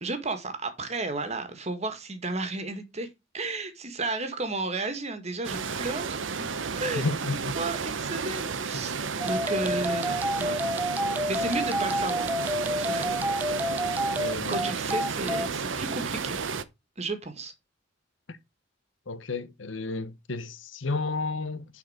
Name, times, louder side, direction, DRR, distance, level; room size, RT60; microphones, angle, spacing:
voice 1, 0.0-3.1 3.3-6.2 6.8-7.1 7.6-8.9 9.2-10.6 11.3-12.3 12.7-13.1 14.5-16.3 17.0-17.5, right 2 dB, 35° right, 1.8 m, -33 dB
sound 1, 5.4-16.6, right 5 dB, 80° right, 0.9 m, -32 dB
voice 2, 7.0-7.5 14.2-14.7 19.1-21.7, left 3 dB, 80° left, 1.0 m, -32 dB
sound 2, 9.2-15.5, equal, 10° right, 0.5 m, -29 dB
10.5 x 4.6 x 5.0 m
head